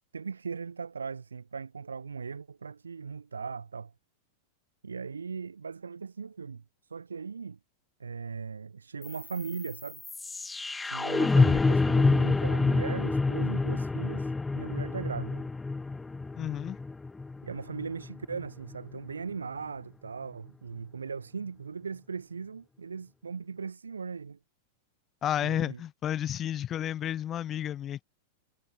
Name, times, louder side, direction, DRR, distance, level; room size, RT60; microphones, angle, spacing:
voice 1, 0.1-3.9 4.8-7.6 8.0-10.0 10.8-15.5 17.4-24.4 25.4-25.8, right 5 dB, 85° right, 2.4 m, -38 dB
sound 1, 9.0-19.1, left 3 dB, 10° left, 0.3 m, -28 dB
voice 2, 16.4-16.8 25.2-28.0, left 11 dB, 30° left, 1.1 m, -31 dB
figure-of-eight pair, 95°, 0 cm